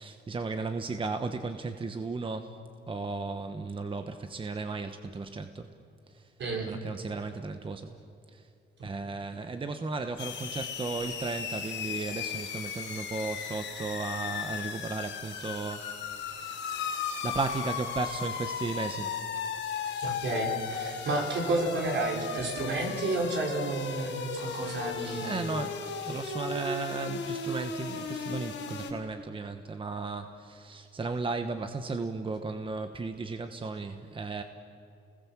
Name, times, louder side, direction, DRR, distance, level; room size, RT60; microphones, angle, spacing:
voice 1, 0.0-2.6 2.9-5.7 6.1-6.3 6.6-7.9 8.3-8.5 8.8-16.6 17.2-19.2 25.2-34.4, right 3 dB, 25° right, 7 dB, 1.2 m, -35 dB
voice 2, 6.4-6.7 8.8-8.9 20.0-25.4, right 2 dB, 65° right, 0 dB, 5.2 m, -31 dB
sound 1, 10.2-28.9, left 5 dB, 70° left, 4.7 m, -36 dB
29.5 x 20.5 x 7.4 m, 2.6 s
cardioid pair, 90°, 20 cm